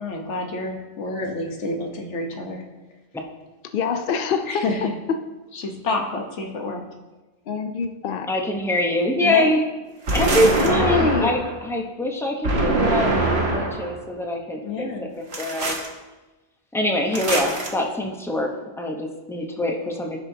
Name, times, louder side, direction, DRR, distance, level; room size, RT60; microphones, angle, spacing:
voice 1, 0.0-2.6 4.5-4.9 5.5-6.8 9.2-9.5 14.6-15.1, left 2 dB, 80° left, 2 dB, 1.4 m, -28 dB
voice 2, 3.7-4.6 7.5-8.3 10.6-11.3, left 6 dB, 60° left, 7 dB, 0.7 m, -24 dB
voice 3, 8.3-9.6 10.1-14.6 15.4-15.7 16.7-18.5 18.8-20.2, left 1 dB, 5° left, 1 dB, 0.7 m, -24 dB
sound 1, 10.1-11.5 12.4-13.9 15.3-15.9 17.1-17.7, right 2 dB, 65° right, 1.6 m, -23 dB
14.0 x 6.0 x 2.8 m, 1.1 s
omnidirectional pair, 1.2 m